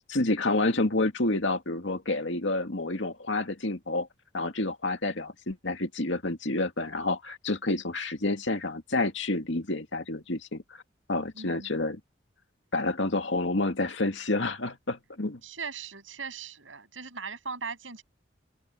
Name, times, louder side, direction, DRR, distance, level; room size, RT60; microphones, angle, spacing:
voice 1, 0.1-4.1 4.3-10.8 11.1-12.0 12.7-15.4, left 2 dB, 75° left, 2.2 m, -29 dB
voice 2, 11.3-11.7 15.4-18.0, right 5 dB, 85° right, 7.4 m, -39 dB
open air
head